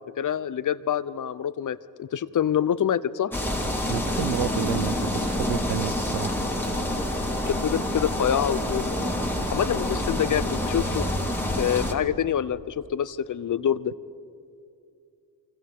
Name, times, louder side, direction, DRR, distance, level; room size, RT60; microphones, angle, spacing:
voice 1, 0.2-3.3 7.5-8.9 9.5-11.1 11.6-13.9, left 9 dB, 45° left, 16 dB, 0.7 m, -26 dB
sound 1, 3.3-11.9, left 1 dB, 5° left, 2.5 m, -27 dB
voice 2, 3.9-6.3, right 11 dB, 85° right, 16 dB, 0.7 m, -30 dB
29.0 x 24.5 x 3.7 m, 2.4 s
cardioid pair, 75°, 44 cm